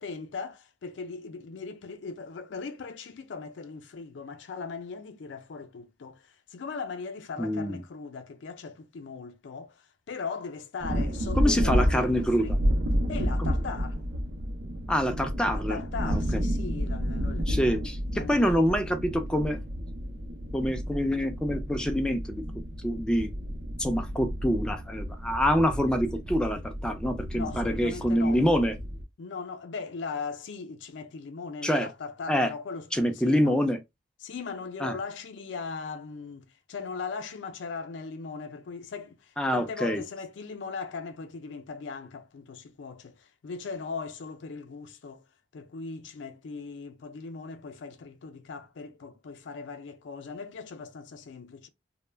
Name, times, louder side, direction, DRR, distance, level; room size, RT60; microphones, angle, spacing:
voice 1, 0.0-12.6 13.1-14.0 15.5-17.8 18.1-18.8 27.3-28.4 29.2-33.6 34.2-45.2 45.5-51.7, left 4 dB, 85° left, 0.4 m, -39 dB
voice 2, 7.4-7.8 11.4-12.5 13.4-13.5 14.9-16.4 17.5-19.6 20.5-22.4 22.8-23.3 23.8-28.7 31.6-31.9 32.3-32.5 32.9-33.8 34.8-35.0 39.4-40.0, equal, 5° left, 0.3 m, -26 dB
sound 1, 10.8-29.0, equal, 65° right, 0.5 m, -31 dB
2.2 x 2.1 x 3.2 m
head